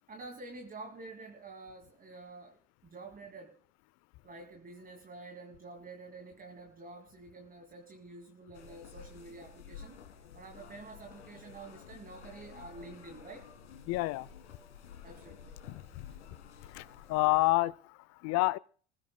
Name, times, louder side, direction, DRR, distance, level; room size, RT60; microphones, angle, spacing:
voice 1, 0.1-3.6 4.2-10.0 10.3-13.5 15.0-15.6, right 3 dB, 25° right, 2.3 m, -49 dB
sound 1, 8.5-17.5, left 7 dB, 85° left, 1.8 m, -51 dB
voice 2, 13.9-14.3 15.7-16.1 16.7-18.6, left 20 dB, 50° left, 0.6 m, -29 dB
29.5 x 15.5 x 2.2 m
hypercardioid pair, 80°, 34 cm